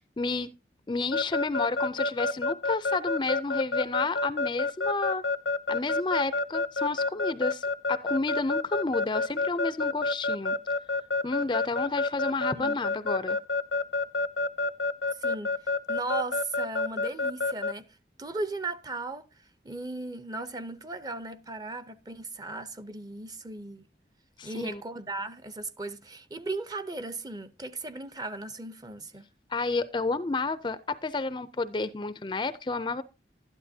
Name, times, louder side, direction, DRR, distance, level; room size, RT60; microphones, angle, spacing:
voice 1, 0.2-0.5 0.9-5.2 5.7-10.6 11.2-13.4 24.4-24.8 29.5-33.0, left 3 dB, 25° left, 0.4 m, -31 dB
Keyboard (musical) / Alarm, 1.1-17.7, left 3 dB, 85° left, 0.7 m, -27 dB
voice 2, 15.2-17.9 18.2-19.2 19.6-23.9 24.4-29.3, right 2 dB, 20° right, 0.6 m, -37 dB
12.5 x 11.0 x 2.7 m
head